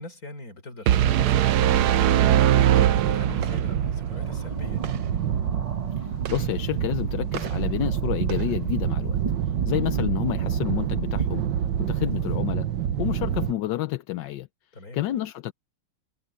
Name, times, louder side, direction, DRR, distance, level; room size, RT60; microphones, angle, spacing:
voice 1, 0.0-4.9 9.7-9.8 14.7-15.0, left 1 dB, 55° left, 5.1 m, -42 dB
sound 1, 0.9-3.8, right 12 dB, 70° right, 1.2 m, -20 dB
sound 2, 0.9-13.5, right 9 dB, 90° right, 1.7 m, -28 dB
sound 3, 1.5-12.4, right 4 dB, 25° right, 1.0 m, -37 dB
voice 2, 6.0-9.2 9.7-11.4 11.8-12.7 13.0-14.5 14.9-15.5, left 14 dB, 85° left, 1.4 m, -29 dB
omnidirectional pair, 1.9 m